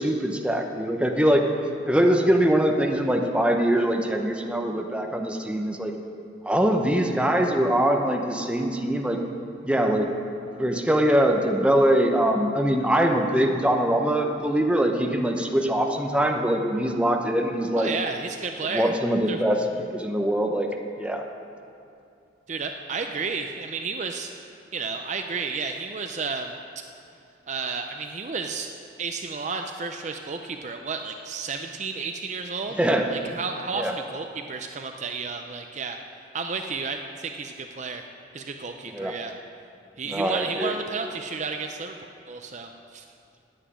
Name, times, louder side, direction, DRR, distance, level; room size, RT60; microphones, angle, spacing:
voice 1, 0.0-1.5 1.8-5.9 6.4-9.2 9.6-10.1 10.6-17.9 18.7-19.6 19.9-20.7 21.0-21.3 32.7-33.1 33.7-33.9 38.9-39.1 40.1-40.7, right 1 dB, 5° right, 2 dB, 0.8 m, -23 dB
voice 2, 17.8-18.9 19.3-19.4 22.5-24.3 24.7-26.5 27.5-28.7 29.0-32.7 33.1-36.0 36.3-38.0 38.3-39.3 40.0-42.0 42.3-43.0, right 4 dB, 35° right, 5 dB, 0.5 m, -32 dB
9.9 x 8.1 x 9.3 m, 2.6 s
head